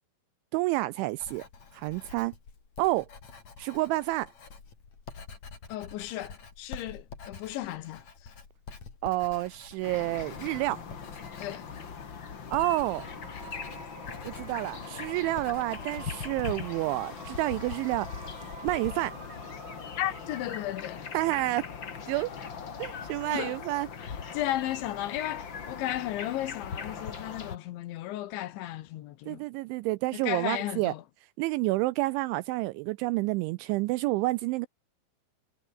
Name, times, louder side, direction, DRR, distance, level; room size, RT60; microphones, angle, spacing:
voice 1, 0.5-1.4 1.7-2.3 2.8-3.1 3.6-4.3 9.0-10.8 12.5-13.0 14.2-18.1 18.6-19.2 21.1-21.6 22.1-22.3 22.8-23.9 29.3-30.9 31.4-34.7, right 19 dB, 85° right, 2.7 m, -29 dB
Writing, 1.2-17.3, left 5 dB, 35° left, 5.0 m, -48 dB
voice 2, 5.7-8.0 11.4-11.6 20.0-21.1 23.3-23.6 24.0-29.4 30.1-31.0, left 14 dB, 75° left, 3.3 m, -34 dB
Forest birds Finland, 9.8-27.6, left 6 dB, 55° left, 1.2 m, -40 dB
sound 1, 12.9-21.0, right 6 dB, 40° right, 2.0 m, -49 dB
omnidirectional pair, 5.9 m